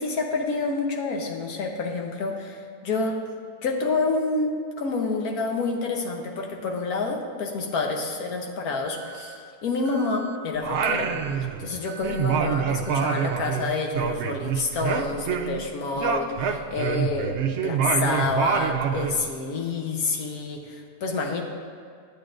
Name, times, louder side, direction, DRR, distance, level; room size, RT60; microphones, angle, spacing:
voice 1, 0.0-3.2 3.6-11.1 11.4-21.4, left 3 dB, 85° left, 2 dB, 1.4 m, -28 dB
Alarm, 8.9-9.4 9.9-10.4 10.9-11.4 11.9-12.4 12.9-13.4, right 10 dB, 90° right, 1.1 m, -44 dB
Singing, 10.6-11.8 12.0-15.7 16.0-19.2, right 7 dB, 65° right, 0.7 m, -26 dB
12.0 x 8.5 x 2.5 m, 2.2 s
omnidirectional pair, 1.5 m